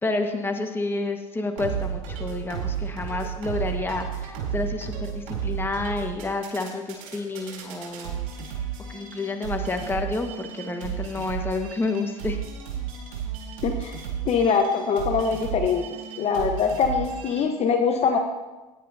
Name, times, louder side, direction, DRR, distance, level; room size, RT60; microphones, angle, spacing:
voice 1, 0.0-8.2 8.9-12.4, left 3 dB, 10° left, 4 dB, 1.6 m, -29 dB
sound 1, 1.6-17.4, right 8 dB, 75° right, 4.2 m, -33 dB
voice 2, 13.6-14.0 14.3-15.9 16.2-18.2, left 6 dB, 35° left, 4 dB, 1.2 m, -23 dB
17.0 x 10.5 x 2.8 m, 1.1 s
hypercardioid pair, 90°, 18 cm